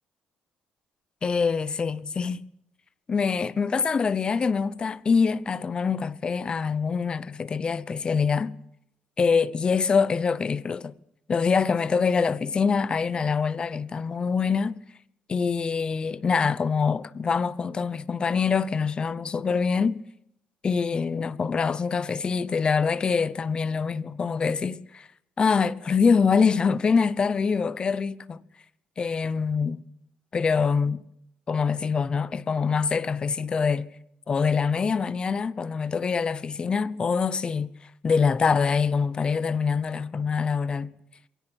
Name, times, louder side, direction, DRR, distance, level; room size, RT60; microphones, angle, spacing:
voice 1, 1.2-2.4 3.1-8.5 9.2-10.9 11.3-14.8 15.3-20.0 20.6-25.1 25.4-28.4 29.0-29.8 30.3-31.0 31.5-33.9 34.3-37.7 38.0-40.9, left 5 dB, 30° left, 0.8 m, -24 dB
22.5 x 17.5 x 8.0 m
cardioid pair, 140°, 3 cm